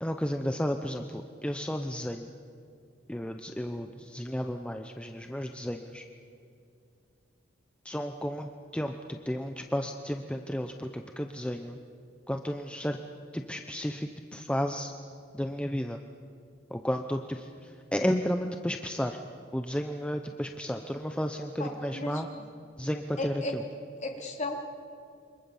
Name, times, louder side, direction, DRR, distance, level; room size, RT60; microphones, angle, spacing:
voice 1, 0.0-2.3 3.1-6.1 7.8-11.8 12.3-13.0 13.3-14.9 15.3-16.0 16.7-19.2 19.5-22.3 22.8-23.6, equal, 5° left, 5 dB, 0.8 m, -33 dB
voice 2, 21.6-22.1 23.2-23.5 24.0-24.5, left 2 dB, 35° left, 1 dB, 3.9 m, -34 dB
28.0 x 25.5 x 7.3 m, 2.4 s
head